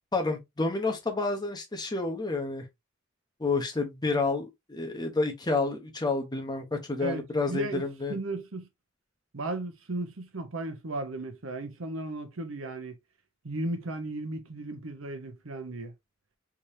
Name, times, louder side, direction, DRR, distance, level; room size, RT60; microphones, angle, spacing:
voice 1, 0.1-2.6 3.4-8.2, left 3 dB, 20° left, 0.9 m, -29 dB
voice 2, 7.5-8.7 9.3-13.0 13.4-15.9, right 2 dB, 90° right, 0.9 m, -35 dB
3.6 x 3.1 x 2.7 m
head